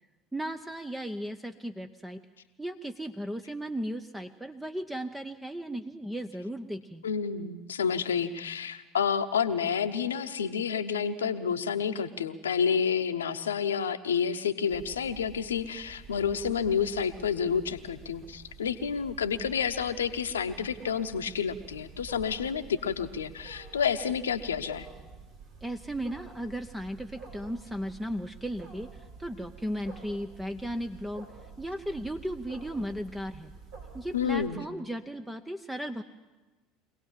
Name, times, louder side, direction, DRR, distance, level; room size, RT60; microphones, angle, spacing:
voice 1, 0.3-2.2 2.6-7.0 25.6-31.3 31.6-33.5 33.9-36.0, equal, 10° right, 8 dB, 0.8 m, -36 dB
voice 2, 7.0-24.9 34.1-34.6, left 7 dB, 80° left, 11 dB, 0.9 m, -29 dB
Wild animals, 14.7-34.5, right 4 dB, 65° right, 5.5 m, -49 dB
24.0 x 17.5 x 7.4 m, 1.2 s
figure-of-eight pair, 65°, 0 cm